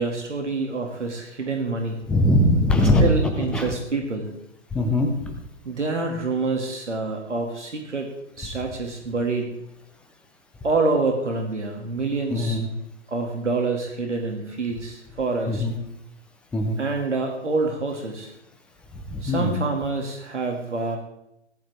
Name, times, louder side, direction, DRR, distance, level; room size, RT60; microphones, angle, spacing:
voice 1, 0.0-2.0 3.0-4.3 5.6-9.6 10.6-12.6 13.1-15.6 16.8-18.3 19.2-21.0, right 3 dB, 75° right, 2 dB, 2.5 m, -27 dB
voice 2, 2.1-3.7 4.7-5.3 12.3-12.7 15.5-15.7 16.5-16.8 19.1-19.5, left 1 dB, 5° left, 4 dB, 0.4 m, -21 dB
18.0 x 10.5 x 3.6 m, 0.82 s
figure-of-eight pair, 125°, 35 cm